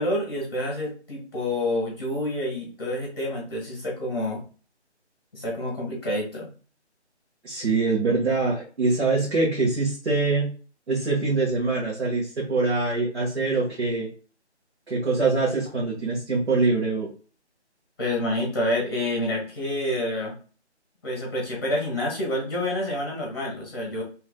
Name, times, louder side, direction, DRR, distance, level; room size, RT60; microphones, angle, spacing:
voice 1, 0.0-4.4 5.3-6.5 18.0-20.3 21.0-24.0, left 1 dB, 20° left, -2 dB, 1.4 m, -28 dB
voice 2, 7.4-10.5 10.9-14.1 14.9-17.1, right 3 dB, 65° right, -6 dB, 1.5 m, -24 dB
3.3 x 3.1 x 2.2 m, 0.38 s
figure-of-eight pair, 175°, 35 cm